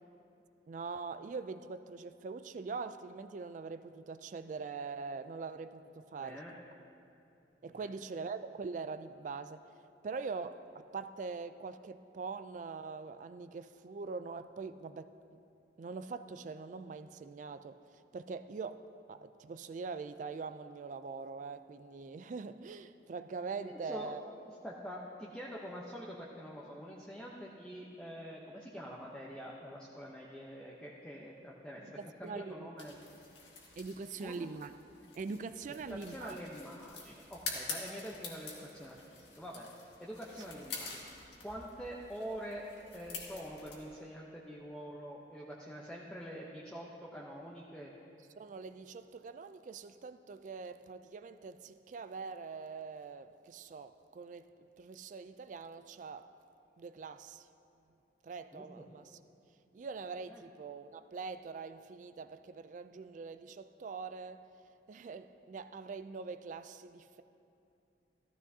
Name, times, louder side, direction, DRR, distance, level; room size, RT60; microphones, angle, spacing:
voice 1, 0.7-6.4 7.6-9.6 10.0-15.4 15.8-17.8 18.1-18.8 19.1-24.3 31.8-32.7 33.8-34.7 35.2-36.4 48.4-54.5 54.8-56.3 56.8-57.5 58.2-59.2 59.7-64.4 64.9-67.2, right 4 dB, 45° right, 12 dB, 0.3 m, -43 dB
voice 2, 6.2-6.5 7.7-7.8 23.6-24.1 24.6-33.0 34.2-34.5 35.9-39.7 40.0-41.0 41.4-42.6 42.9-47.9 58.5-58.9 60.3-60.4, equal, 5° left, -5 dB, 0.7 m, -45 dB
sound 1, 32.8-43.7, left 4 dB, 85° left, 1.8 m, -47 dB
14.5 x 14.0 x 2.7 m, 2.7 s
head